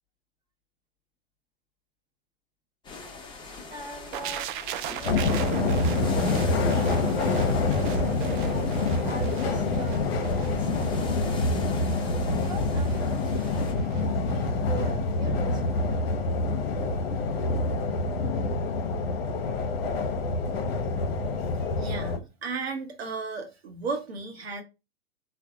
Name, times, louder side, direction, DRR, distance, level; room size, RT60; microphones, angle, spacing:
sound 1, 2.8-13.7, left 4 dB, 15° left, 0.8 m, -43 dB
voice 1, 3.7-4.6 4.8-5.5 6.3-8.7 9.0-11.8 12.1-16.0, right 2 dB, 15° right, 0.9 m, -41 dB
sound 2, 4.1-14.0 14.3-14.5, right 11 dB, 55° right, 0.4 m, -37 dB
sound 3, 5.0-22.2, left 3 dB, 70° left, 0.7 m, -26 dB
voice 2, 21.6-24.6, right 4 dB, 85° right, 0.9 m, -34 dB
3.4 x 2.2 x 3.5 m
hypercardioid pair, 110°, 30 cm